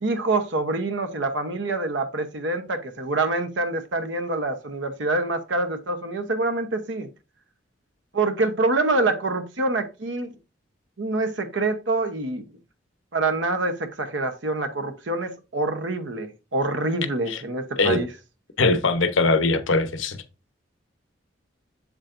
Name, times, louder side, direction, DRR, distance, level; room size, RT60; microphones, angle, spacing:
voice 1, 0.0-7.1 8.1-10.3 11.0-12.4 13.1-18.1, right 2 dB, 70° right, 0.9 m, -26 dB
voice 2, 18.6-20.2, left 3 dB, 85° left, 0.9 m, -21 dB
7.7 x 7.2 x 2.6 m
head